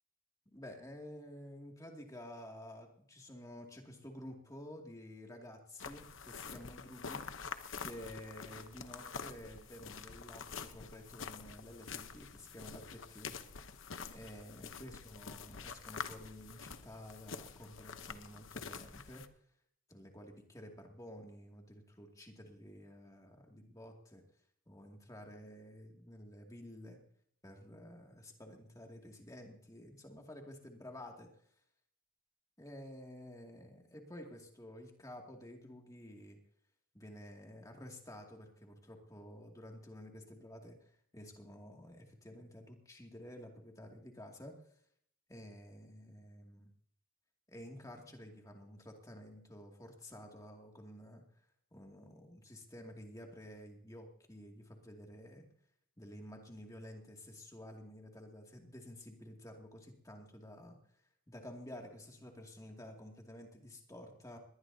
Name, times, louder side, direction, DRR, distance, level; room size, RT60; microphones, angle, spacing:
voice 1, 0.5-7.3 7.8-13.3 14.1-19.3 19.9-24.2 24.7-27.0 27.4-31.3 32.6-36.4 36.9-44.6 45.3-46.7 47.5-51.2 51.7-55.4 56.0-60.8 61.3-64.4, left 1 dB, 15° left, 1 dB, 2.4 m, -51 dB
sound 1, 5.8-19.3, left 5 dB, 70° left, 1.0 m, -47 dB
21.0 x 18.5 x 2.8 m, 0.66 s
head